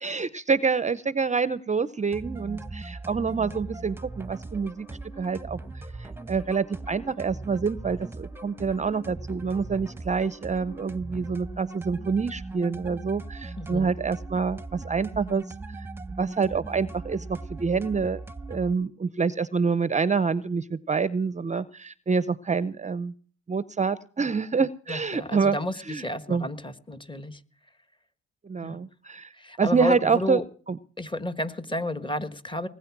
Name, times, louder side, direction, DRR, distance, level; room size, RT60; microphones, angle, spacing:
voice 1, 0.0-4.9 5.2-5.6 6.0-18.2 18.5-23.1 23.5-25.6 25.9-26.0 26.3-26.5 28.4-29.3 29.6-30.4 30.7-30.8, right 5 dB, 25° right, 17 dB, 0.7 m, -27 dB
sound 1, 2.1-18.7, right 3 dB, 5° right, 1.0 m, -39 dB
voice 2, 13.6-13.9 24.9-27.4 28.6-28.8 29.4-30.4 31.0-32.7, left 1 dB, 15° left, 13 dB, 1.4 m, -31 dB
20.0 x 9.5 x 6.0 m, 0.43 s
cardioid pair, 90°, 30 cm